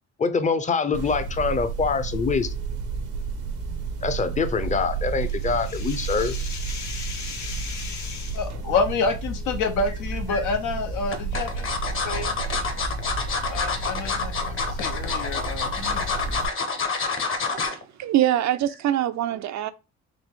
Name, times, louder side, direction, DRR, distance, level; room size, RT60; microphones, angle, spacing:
voice 1, 0.2-2.5 4.0-6.4, left 4 dB, 25° left, 0.5 m, -24 dB
sound 1, 0.9-16.5, right 4 dB, 90° right, 0.9 m, -32 dB
sound 2, 4.7-8.5, left 5 dB, 70° left, 0.9 m, -38 dB
voice 2, 8.3-12.4 13.5-16.1, left 4 dB, 90° left, 0.8 m, -28 dB
sound 3, 9.9-10.4 11.1-17.8 18.2-18.4 18.7-18.8, left 4 dB, 45° left, 1.0 m, -28 dB
voice 3, 17.5-19.7, right 12 dB, 65° right, 0.5 m, -24 dB
4.0 x 2.6 x 3.5 m
cardioid pair, 90°, 30 cm